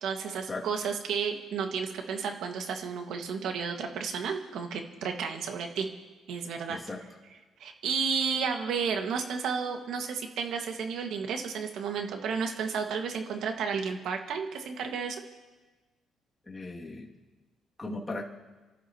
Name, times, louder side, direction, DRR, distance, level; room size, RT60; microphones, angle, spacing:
voice 1, 0.0-5.9 6.3-6.8 7.6-15.2, right 6 dB, 75° right, 3 dB, 1.9 m, -32 dB
voice 2, 6.7-7.0 16.5-17.1 17.8-18.2, left 2 dB, 20° left, -3 dB, 2.6 m, -37 dB
29.0 x 13.5 x 3.1 m, 1.2 s
cardioid pair, 110°, 0 cm